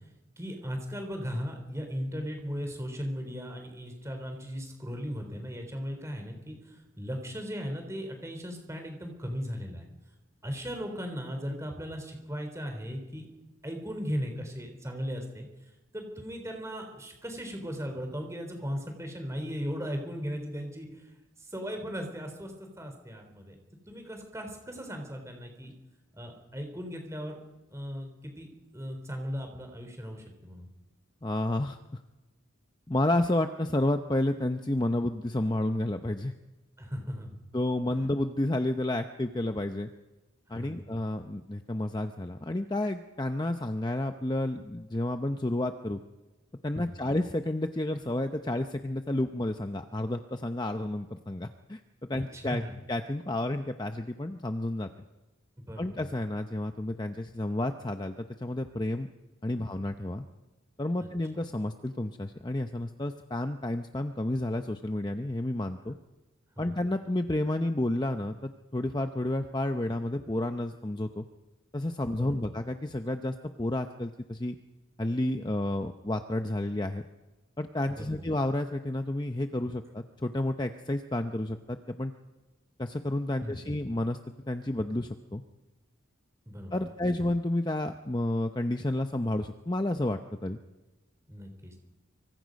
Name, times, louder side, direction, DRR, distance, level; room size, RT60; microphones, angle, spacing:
voice 1, 0.4-9.9 10.4-13.3 13.6-15.5 15.9-21.0 21.5-23.6 23.9-25.7 26.1-27.4 27.7-28.5 28.7-30.7 36.8-37.4 37.9-38.0 40.5-40.9 46.7-46.9 52.1-52.7 55.6-56.0 61.0-61.1 66.6-66.8 72.0-72.6 78.0-78.3 83.4-83.7 86.5-86.9 91.3-91.8, equal, 15° right, 4 dB, 3.6 m, -37 dB
voice 2, 31.2-31.8 32.9-36.3 37.5-39.9 40.5-46.0 46.6-51.8 52.1-52.6 52.9-54.9 55.8-59.1 59.4-60.2 60.8-65.9 66.6-71.2 71.7-74.6 75.0-77.0 77.6-82.1 82.8-84.2 84.5-85.4 86.7-90.6, left 1 dB, 20° left, 6 dB, 0.7 m, -31 dB
25.0 x 24.5 x 5.3 m, 1.1 s
head